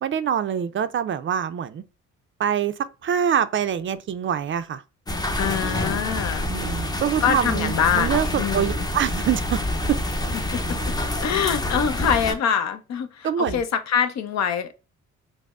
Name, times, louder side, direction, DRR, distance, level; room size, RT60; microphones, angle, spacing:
voice 1, 0.0-1.8 2.4-4.8 6.5-9.6 9.9-10.0 13.2-13.6, right 8 dB, 40° right, 0.4 m, -25 dB
sound 1, 5.1-12.3, left 1 dB, 15° left, 0.6 m, -27 dB
voice 2, 5.4-6.5 7.2-8.8 10.5-10.6 11.1-14.9, left 8 dB, 65° left, 0.6 m, -24 dB
4.9 x 2.0 x 2.3 m
cardioid pair, 90°, 30 cm